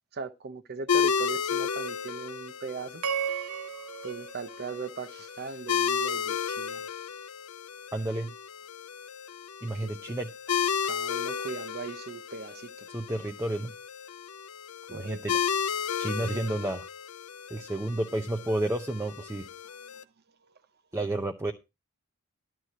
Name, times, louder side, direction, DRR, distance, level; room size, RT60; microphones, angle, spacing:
voice 1, 0.1-3.0 4.0-6.8 9.7-10.2 10.8-12.9 14.9-15.2, right 4 dB, 50° right, 0.7 m, -39 dB
sound 1, 0.9-20.0, left 7 dB, 85° left, 0.7 m, -33 dB
sound 2, 3.0-5.4, right 7 dB, 75° right, 1.1 m, -35 dB
voice 2, 7.9-8.3 9.6-10.3 12.9-13.7 14.9-15.3 16.0-16.9 17.5-19.5 20.9-21.5, right 1 dB, 15° right, 0.7 m, -31 dB
11.5 x 4.6 x 7.9 m
head